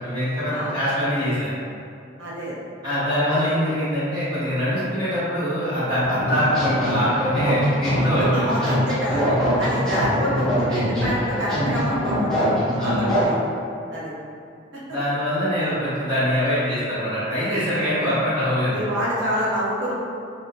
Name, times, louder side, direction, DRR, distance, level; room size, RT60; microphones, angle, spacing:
voice 1, 0.0-1.5 2.8-8.6 9.4-9.5 12.8-13.1 14.9-18.8, equal, 20° right, -13 dB, 1.3 m, -23 dB
voice 2, 2.2-2.6 3.3-3.4 8.0-9.3 9.6-12.5 12.8-13.5 13.9-14.1 14.7-14.8 15.6-15.7 17.7-17.9 18.7-19.9, equal, 75° right, -8 dB, 0.9 m, -27 dB
sound 1, 6.0-13.2, equal, 5° left, 0.9 m, -23 dB
3.9 x 2.6 x 2.2 m, 2.5 s
head